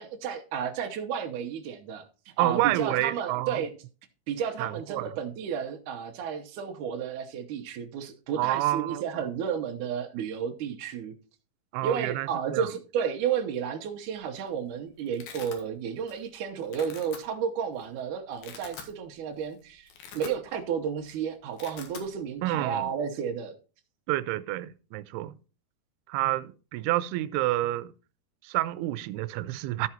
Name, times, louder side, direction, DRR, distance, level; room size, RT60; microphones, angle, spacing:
voice 1, 0.0-3.7 4.3-11.1 11.8-23.5, right 7 dB, 70° right, 1.9 m, -32 dB
voice 2, 2.4-3.6 4.6-5.1 8.4-9.0 11.7-12.7 22.4-22.9 24.1-25.3 26.1-27.9 28.4-29.9, right 15 dB, 90° right, 2.6 m, -29 dB
Domestic sounds home sounds, 14.1-14.5 14.7-15.6 16.1-16.3 16.6-17.2 17.8-17.9 18.3-18.9 19.3-19.5 19.8-20.7 21.0-21.2 21.4-22.1, left 6 dB, 75° left, 3.4 m, -45 dB
13.5 x 4.8 x 4.3 m
omnidirectional pair, 4.5 m